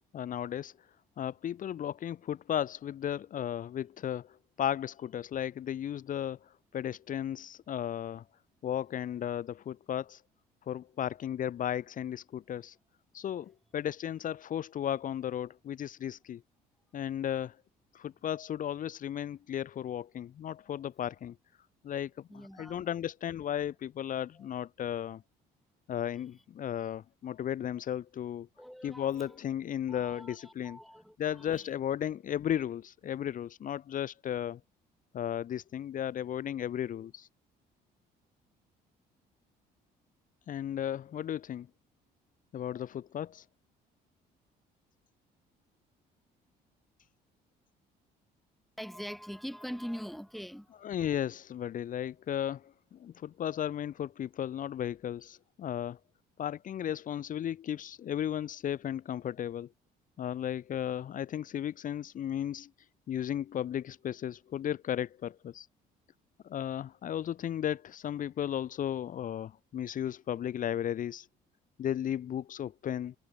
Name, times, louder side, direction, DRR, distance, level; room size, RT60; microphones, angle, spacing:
voice 1, 0.1-0.7 1.2-8.2 8.6-10.2 10.7-12.8 13.1-16.4 16.9-17.6 17.9-21.4 21.8-25.2 25.9-28.5 28.8-30.8 31.2-34.6 35.1-37.3 40.5-41.7 42.5-43.5 50.8-56.0 56.4-59.7 60.2-62.7 63.1-65.7 66.4-71.3 71.8-73.1, left 10 dB, 50° left, 1.7 m, -35 dB
voice 2, 22.3-22.9 24.4-24.5 28.6-29.4 29.9-31.7 48.8-50.9, equal, ahead, 6.4 m, -43 dB
cardioid pair, 110°, 17 cm